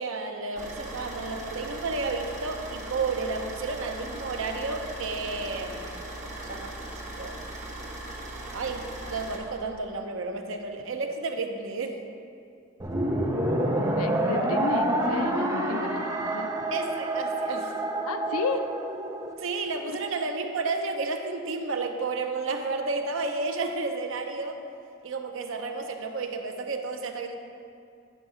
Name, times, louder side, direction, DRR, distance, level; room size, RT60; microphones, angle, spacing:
voice 1, 0.0-5.8 6.2-6.8 7.1-7.4 8.5-12.0 16.7-17.7 19.4-24.6 25.0-27.3, right 3 dB, 65° right, 4 dB, 0.7 m, -32 dB
Car / Idling, 0.6-9.4, right 1 dB, 35° right, 1.4 m, -39 dB
sound 1, 12.8-19.3, right 1 dB, 15° right, 0.6 m, -27 dB
voice 2, 13.8-16.5 18.0-18.7 19.9-20.0, left 4 dB, 90° left, 8 dB, 0.5 m, -33 dB
9.3 x 4.6 x 5.5 m, 2.4 s
head